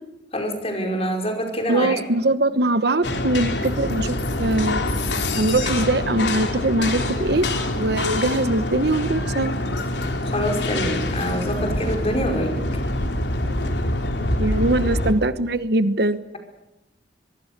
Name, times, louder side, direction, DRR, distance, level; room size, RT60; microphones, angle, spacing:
voice 1, 0.3-2.0 10.2-12.6, equal, 35° left, 4 dB, 5.3 m, -26 dB
voice 2, 1.7-4.8 5.4-7.5 7.8-9.5 14.2-16.2, right 2 dB, 65° right, 12 dB, 1.2 m, -22 dB
sound 1, 3.0-15.1, left 1 dB, 75° left, 3.3 m, -25 dB
24.0 x 23.0 x 6.8 m, 0.92 s
head